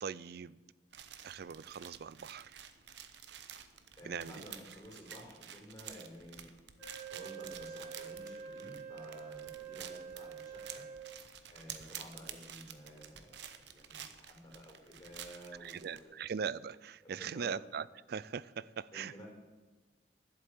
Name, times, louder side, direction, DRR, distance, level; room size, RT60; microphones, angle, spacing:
voice 1, 0.0-0.6 1.2-2.6 4.0-4.4 15.6-19.2, right 6 dB, 60° right, 20 dB, 0.4 m, -41 dB
sound 1, 0.9-16.0, right 9 dB, 75° right, 0.9 m, -51 dB
voice 2, 4.0-6.5 7.1-10.8 11.5-16.1 17.0-17.5 18.9-19.2, equal, 20° left, -2 dB, 5.0 m, -52 dB
Wind instrument woodwind instrument, 6.8-11.2, right 6 dB, 10° right, 5.0 m, -46 dB
12.0 x 7.9 x 8.6 m, 1.3 s
head